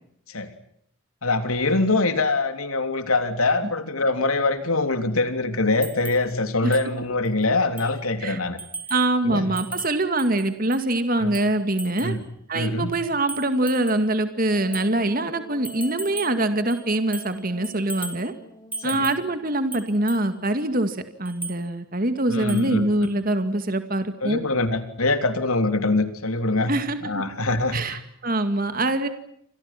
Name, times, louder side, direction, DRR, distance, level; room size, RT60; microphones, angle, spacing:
voice 1, 1.2-8.6 9.2-9.5 11.2-11.3 12.0-12.2 12.5-12.9 18.8-19.0 22.3-22.8 24.2-26.7 27.0-28.0, left 2 dB, 85° left, 8 dB, 3.4 m, -23 dB
sound 1, 5.8-6.3 6.7-6.9 7.3-7.4 7.8-8.0 8.6-9.1 9.6-10.9 11.3-12.2 12.9-14.1 14.7-14.9 15.6-16.4 16.7-17.4 17.6-18.3 18.7-19.3 19.7-20.3 21.3-21.6 22.5-22.8 23.0-23.2, right 3 dB, 10° right, 2.3 m, -37 dB
voice 2, 8.9-12.1 12.5-18.3 18.8-24.4 26.7-27.0 27.7-29.1, right 2 dB, 40° right, 9 dB, 2.2 m, -24 dB
Wind instrument woodwind instrument, 14.4-20.0, equal, 20° left, 5.0 m, -46 dB
29.0 x 26.5 x 6.0 m, 0.71 s
head